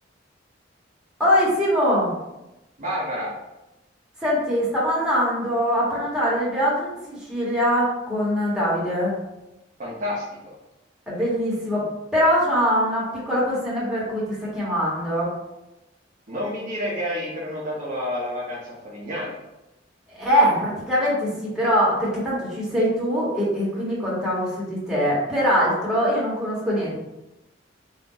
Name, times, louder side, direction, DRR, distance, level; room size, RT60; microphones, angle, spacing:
voice 1, 1.2-2.1 4.2-9.1 11.1-11.8 12.1-15.3 20.1-27.0, equal, 5° right, -8 dB, 1.5 m, -22 dB
voice 2, 2.8-3.3 9.8-10.6 16.3-19.4, left 1 dB, 45° right, -6 dB, 1.0 m, -29 dB
4.3 x 2.6 x 4.0 m, 0.95 s
head